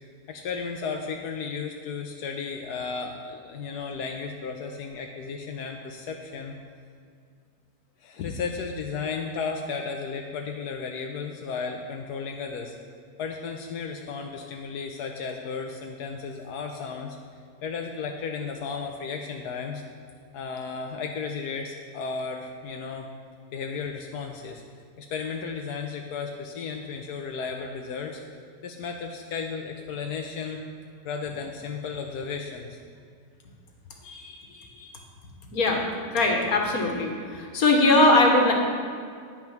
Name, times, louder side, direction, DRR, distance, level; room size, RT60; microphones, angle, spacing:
voice 1, 0.3-6.5 8.0-12.7 13.2-17.2 17.6-19.8 20.3-23.1 23.5-24.6 25.0-28.2 28.6-30.6 31.0-32.8, left 5 dB, 90° left, 3 dB, 1.4 m, -34 dB
voice 2, 34.0-34.9 35.5-35.8 36.1-38.5, left 2 dB, 65° left, 1 dB, 2.0 m, -21 dB
10.0 x 9.8 x 5.9 m, 2.2 s
omnidirectional pair, 1.7 m